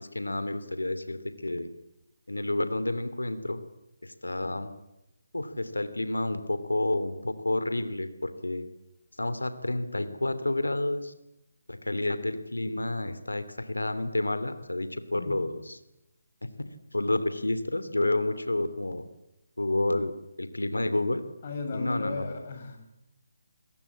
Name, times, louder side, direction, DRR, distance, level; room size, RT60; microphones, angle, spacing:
voice 1, 0.0-1.7 2.3-3.6 4.0-4.7 5.3-8.7 9.2-11.1 11.7-15.8 16.6-19.0 19.6-20.1 20.4-21.2 21.7-22.3, left 2 dB, 90° left, 12 dB, 2.9 m, -30 dB
voice 2, 21.4-22.9, left 3 dB, 45° left, 5 dB, 7.4 m, -35 dB
27.5 x 21.5 x 8.7 m, 0.90 s
figure-of-eight pair, 150°, 0 cm